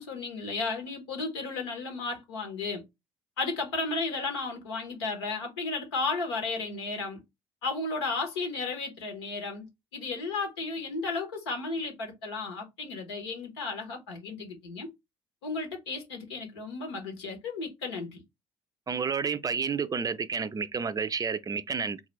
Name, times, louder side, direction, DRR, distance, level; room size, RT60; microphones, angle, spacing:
voice 1, 0.0-2.8 3.4-7.2 7.6-14.9 15.4-18.2, left 3 dB, 90° left, 1.1 m, -34 dB
voice 2, 18.9-22.0, right 5 dB, 30° right, 0.4 m, -30 dB
3.8 x 2.4 x 3.0 m
hypercardioid pair, 55°, 13 cm